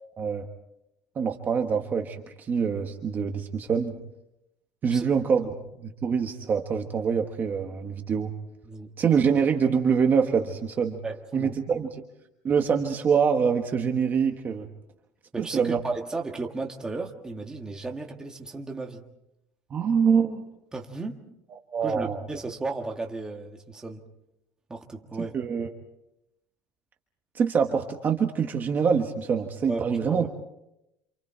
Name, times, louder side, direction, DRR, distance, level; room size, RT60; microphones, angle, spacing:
voice 1, 1.1-4.0 4.8-5.5 5.8-8.3 9.0-11.0 11.3-11.9 12.4-14.7 15.4-15.8 19.7-20.4 21.5-22.2 25.3-25.7 27.3-30.2, right 6 dB, 25° right, 4 dB, 1.3 m, -25 dB
voice 2, 11.0-11.5 15.3-19.0 20.7-21.2 21.8-24.0 24.7-25.3 29.7-30.3, right 3 dB, 10° right, 2 dB, 1.6 m, -34 dB
28.0 x 27.5 x 4.4 m, 0.83 s
cardioid pair, 180°, 7 cm